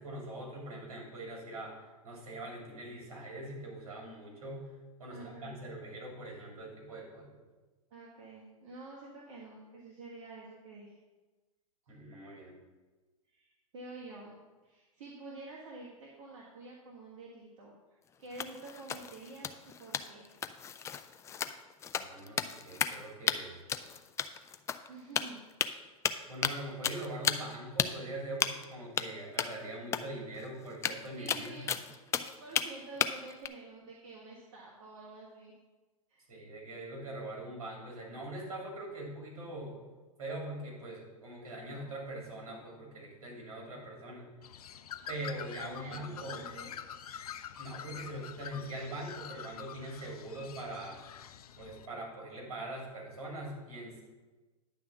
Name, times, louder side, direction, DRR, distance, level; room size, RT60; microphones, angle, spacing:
voice 1, 0.0-1.8 2.0-4.7 5.0-7.4 11.9-12.5 21.9-23.6 26.3-31.6 36.3-39.8 40.2-44.2 45.1-46.4 47.6-51.0 51.6-54.0, right 1 dB, 75° right, -2 dB, 3.0 m, -42 dB
voice 2, 5.1-5.6 7.9-11.0 13.3-14.3 14.6-17.7 18.2-20.3 24.9-25.4 29.7-29.9 31.1-31.8 32.4-35.5 36.1-36.3 45.6-46.8, right 3 dB, 55° right, -3 dB, 1.6 m, -48 dB
sound 1, 18.3-23.0 23.3-23.4 23.7-24.9 25.2-25.7 26.0-26.6 26.8-27.5 27.8-27.9 28.4-28.6 29.0-29.1 29.4-29.5 29.9-30.0 30.3-30.4 30.7-32.7 33.0-33.5, left 8 dB, 15° left, 0.3 m, -33 dB
Bird, 44.4-51.9, left 9 dB, 80° left, 0.5 m, -46 dB
10.0 x 3.5 x 7.0 m, 1.2 s
hypercardioid pair, 110°, 19 cm